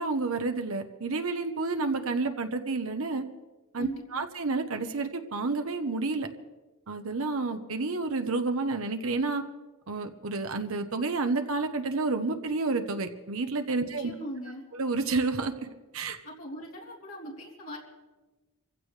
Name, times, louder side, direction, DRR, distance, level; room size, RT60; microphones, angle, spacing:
voice 1, 0.0-3.2 3.7-6.3 6.9-9.4 9.9-14.1 14.7-15.7 15.9-16.2, right 3 dB, 70° right, 6 dB, 1.0 m, -30 dB
voice 2, 3.8-4.2 13.8-14.6 16.2-17.8, equal, 75° left, -3 dB, 3.4 m, -40 dB
27.0 x 15.5 x 3.3 m, 1.2 s
head